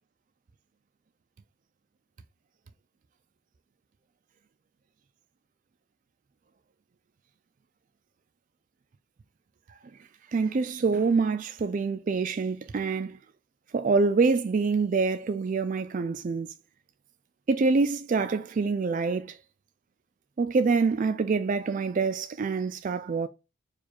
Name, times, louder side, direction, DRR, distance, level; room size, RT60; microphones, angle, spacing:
voice 1, 10.3-13.2 13.7-16.5 17.5-19.4 20.4-23.3, right 4 dB, 35° right, 0.3 m, -26 dB
4.7 x 2.4 x 4.2 m
head